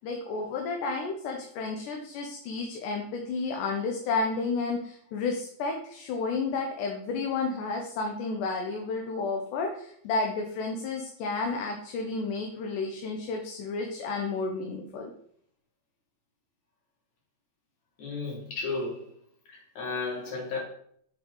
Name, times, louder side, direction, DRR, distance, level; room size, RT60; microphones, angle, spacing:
voice 1, 0.0-15.1, left 3 dB, 75° left, 2 dB, 2.3 m, -31 dB
voice 2, 18.0-19.1 19.5-20.6, left 4 dB, 55° left, -3 dB, 3.3 m, -33 dB
8.3 x 5.0 x 3.8 m, 0.65 s
omnidirectional pair, 3.9 m